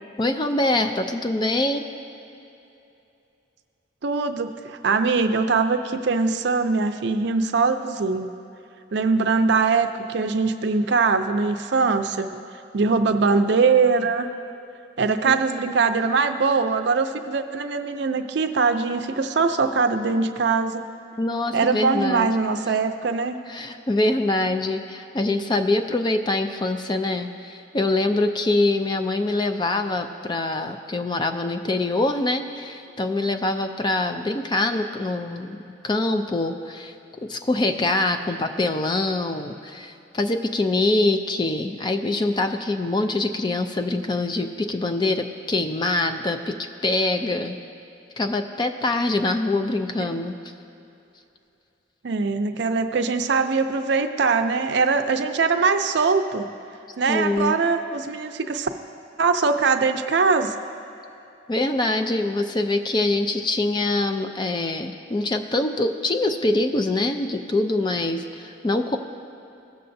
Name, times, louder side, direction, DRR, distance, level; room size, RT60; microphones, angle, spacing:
voice 1, 0.2-1.8 15.3-15.4 21.2-22.3 23.5-35.6 35.8-36.9 37.3-47.6 48.2-50.3 57.1-57.6 61.5-69.0, left 2 dB, 25° left, 7 dB, 0.4 m, -24 dB
voice 2, 4.0-8.3 8.9-12.4 12.7-14.3 15.0-20.8 21.5-23.4 50.0-50.2 52.0-56.5 57.0-58.7 59.2-60.5, right 4 dB, 60° right, 7 dB, 0.5 m, -22 dB
17.0 x 6.7 x 2.6 m, 2.8 s
head